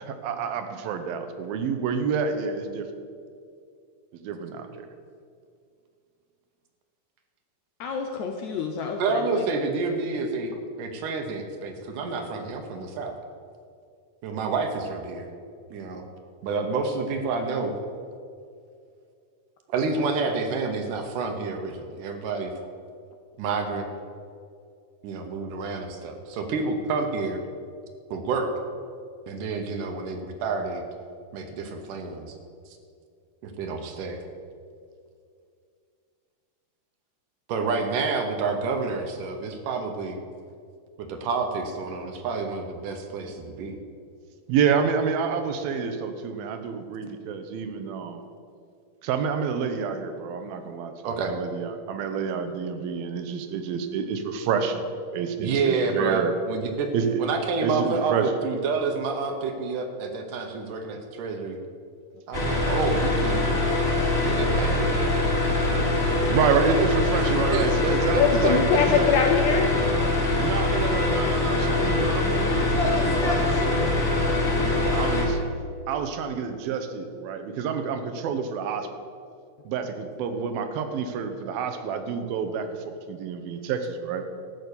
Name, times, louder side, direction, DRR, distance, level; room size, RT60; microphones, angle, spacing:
voice 1, 0.0-2.9 4.2-4.9 44.5-48.2 49.0-54.8 55.1-56.3 56.9-57.2 57.6-58.3 64.2-64.3 66.3-69.2 70.4-74.3 74.5-75.4 75.9-78.9 79.7-84.2, right 6 dB, 85° right, 7 dB, 2.8 m, -28 dB
voice 2, 7.8-9.4 68.1-69.7, left 6 dB, 75° left, 3 dB, 1.7 m, -24 dB
voice 3, 9.0-13.1 14.2-15.3 15.7-16.0 16.4-17.7 19.7-22.5 23.4-23.9 25.0-27.4 28.1-28.5 29.3-30.8 31.3-32.4 33.4-34.2 37.5-40.2 41.0-43.8 51.0-51.3 55.4-56.9 57.2-61.6 62.3-63.5 64.2-65.6 67.2-67.3 67.5-68.2 68.7-68.8 70.2-70.3, right 4 dB, 70° right, 5 dB, 2.5 m, -29 dB
sound 1, 62.3-75.3, left 2 dB, 20° left, 2.0 m, -23 dB
13.5 x 6.1 x 8.4 m, 2.3 s
omnidirectional pair, 4.1 m